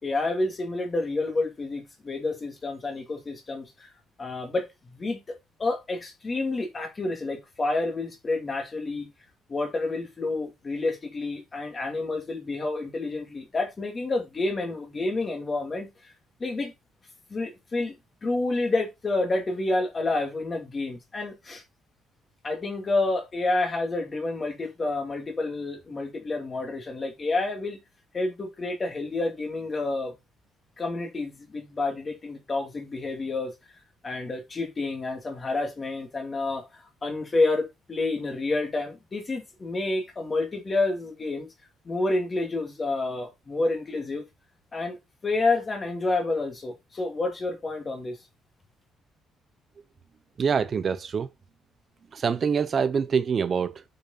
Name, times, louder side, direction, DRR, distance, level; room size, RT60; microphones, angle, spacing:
voice 1, 0.0-3.9 4.2-9.1 9.5-16.1 16.4-16.7 17.3-17.9 18.2-21.6 22.4-27.8 28.1-30.1 30.8-33.5 34.0-41.5 41.8-44.2 44.7-45.0 45.2-48.2, left 2 dB, 20° left, 2.5 m, -29 dB
voice 2, 50.4-51.3 52.1-53.8, right 6 dB, 30° right, 0.5 m, -25 dB
6.7 x 6.5 x 4.1 m
cardioid pair, 175°, 0 cm